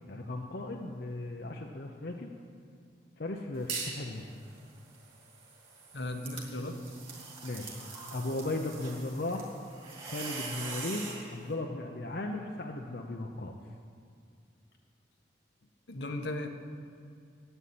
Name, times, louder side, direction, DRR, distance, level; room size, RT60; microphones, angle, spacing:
voice 1, 0.1-2.3 3.2-4.2 7.4-7.8 8.1-9.5 10.0-13.5, left 2 dB, 55° left, 2 dB, 0.8 m, -36 dB
sound 1, 3.7-4.1 4.5-11.3, right 4 dB, 30° right, 2.5 m, -42 dB
voice 2, 5.9-6.8 15.9-16.5, left 1 dB, 75° left, 5 dB, 1.1 m, -36 dB
11.5 x 9.2 x 8.5 m, 2.3 s
head